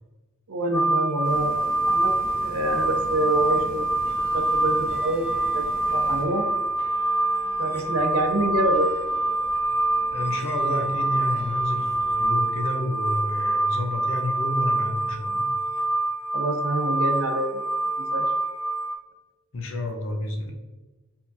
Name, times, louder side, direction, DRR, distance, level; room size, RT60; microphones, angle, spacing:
voice 1, 0.5-2.1 2.4-3.8 4.3-5.3 5.5-6.5 7.6-8.9 16.3-17.6 18.1-18.2, right 1 dB, 90° right, 4 dB, 0.6 m, -26 dB
sound 1, 0.7-19.0, right 2 dB, 10° left, 0.6 m, -25 dB
sound 2, 1.2-6.2, right 1 dB, 45° right, 0.9 m, -42 dB
sound 3, 2.6-12.3, equal, 30° left, 1.0 m, -48 dB
voice 2, 10.1-15.5 19.5-20.5, left 1 dB, 60° left, 3 dB, 0.7 m, -30 dB
4.8 x 3.6 x 2.6 m, 1.2 s
head